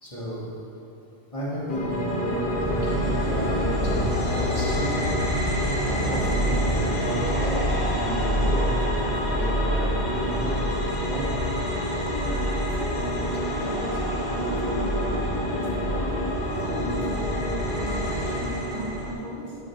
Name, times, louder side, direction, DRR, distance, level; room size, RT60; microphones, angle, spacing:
voice 1, 0.0-0.5 1.3-5.0 5.8-7.6 7.9-10.6 11.0-11.3 12.9-13.0 15.9-16.0 16.7-17.0 17.9-18.0, equal, 30° left, -8 dB, 2.3 m, -33 dB
sound 1, 1.7-19.1, equal, 65° left, 1.6 m, -26 dB
voice 2, 12.1-19.6, equal, 50° right, -4 dB, 1.7 m, -36 dB
9.6 x 6.3 x 4.7 m, 2.9 s
omnidirectional pair, 1.1 m